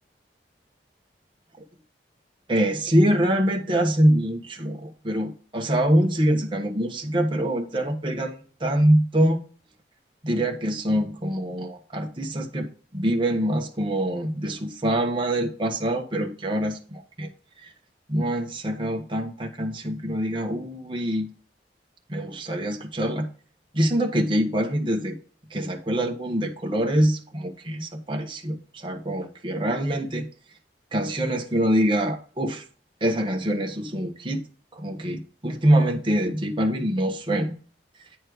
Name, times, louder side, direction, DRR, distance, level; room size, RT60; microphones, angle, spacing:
voice 1, 2.5-9.4 10.2-17.3 17.6-17.7 18.1-21.3 22.1-23.3 23.7-25.2 25.5-30.3 30.9-32.6 33.0-34.4 34.7-37.5, right 1 dB, 30° right, 2 dB, 1.3 m, -24 dB
9.3 x 4.3 x 4.8 m, 0.39 s
head